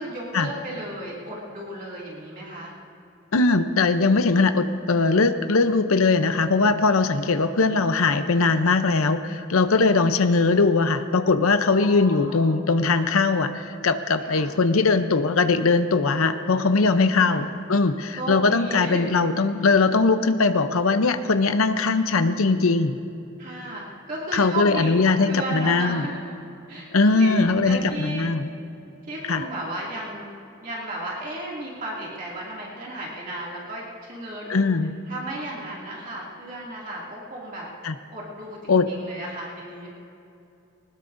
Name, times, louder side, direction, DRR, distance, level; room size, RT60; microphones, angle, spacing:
voice 1, 0.0-2.7 7.2-7.3 9.9-10.0 11.7-12.6 14.2-14.5 17.0-17.5 18.2-19.1 23.4-26.3 26.7-28.3 29.0-30.3 30.6-34.7 35.1-37.7 38.1-39.9, right 1 dB, 40° right, -5 dB, 2.4 m, -34 dB
voice 2, 3.3-23.0 24.3-26.1 26.9-28.5 29.3-29.4 34.5-34.9 37.8-37.9 38.7-38.9, left 3 dB, 85° left, 9 dB, 0.7 m, -20 dB
20.5 x 19.5 x 2.6 m, 2.7 s
head